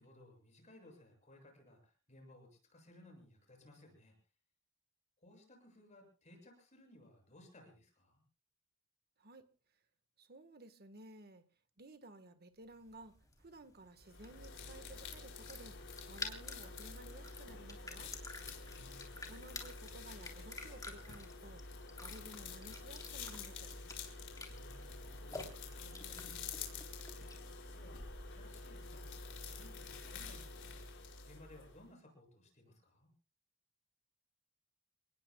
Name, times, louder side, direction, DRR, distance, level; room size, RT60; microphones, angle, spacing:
voice 1, 0.0-4.1 5.2-8.2 18.6-19.2 24.4-26.7 27.7-33.1, left 1 dB, 35° left, 7.2 m, -61 dB
voice 2, 10.2-11.4 11.8-15.8 16.1-18.1 19.3-23.7, right 2 dB, 45° right, 1.4 m, -55 dB
sound 1, 12.7-27.6, left 3 dB, 15° left, 3.4 m, -51 dB
sound 2, 14.0-31.8, left 4 dB, 60° left, 5.2 m, -48 dB
30.0 x 19.5 x 2.3 m
head